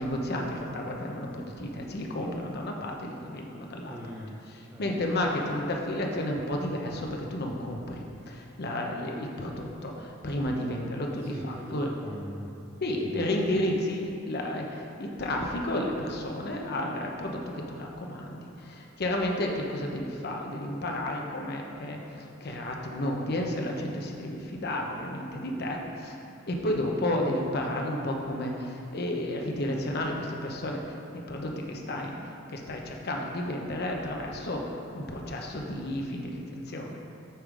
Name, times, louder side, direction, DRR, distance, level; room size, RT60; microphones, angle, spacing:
voice 1, 0.0-4.0 4.8-11.9 12.8-26.2 26.5-37.0, left 1 dB, 55° left, 0 dB, 0.8 m, -32 dB
voice 2, 3.8-4.8 11.2-12.5 13.0-13.3, equal, 10° right, -4 dB, 0.5 m, -41 dB
8.5 x 3.8 x 4.8 m, 2.6 s
head